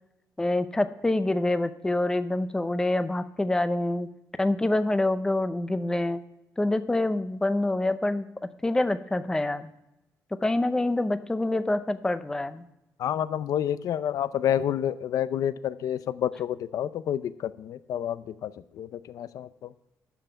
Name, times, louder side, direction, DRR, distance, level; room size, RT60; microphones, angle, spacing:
voice 1, 0.4-4.1 4.4-6.2 6.6-8.3 8.6-9.7 10.4-12.7, left 2 dB, 10° left, 11 dB, 0.6 m, -26 dB
voice 2, 13.0-19.7, left 10 dB, 75° left, 15 dB, 0.5 m, -29 dB
12.0 x 5.7 x 8.2 m, 0.89 s
wide cardioid pair, 160°, 6 cm